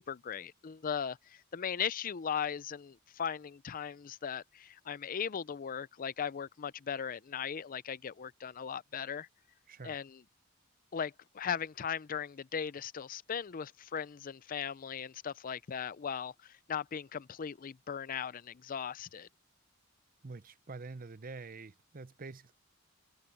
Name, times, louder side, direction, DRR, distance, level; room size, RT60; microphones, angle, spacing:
voice 1, 0.0-9.3 9.8-10.2 10.9-19.3, left 7 dB, 40° left, 0.5 m, -38 dB
voice 2, 20.2-22.5, right 3 dB, 40° right, 0.7 m, -46 dB
head